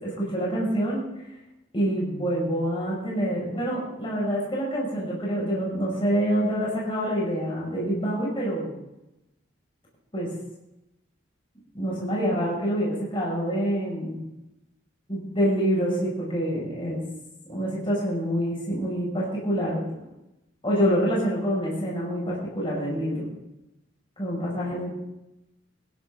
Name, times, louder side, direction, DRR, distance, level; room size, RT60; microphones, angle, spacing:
voice 1, 0.0-1.3 1.7-8.7 10.1-10.3 11.7-14.2 15.1-17.0 17.5-19.9 20.6-23.3 24.2-24.9, equal, 25° left, -5 dB, 5.9 m, -26 dB
18.5 x 15.5 x 3.7 m, 0.91 s
head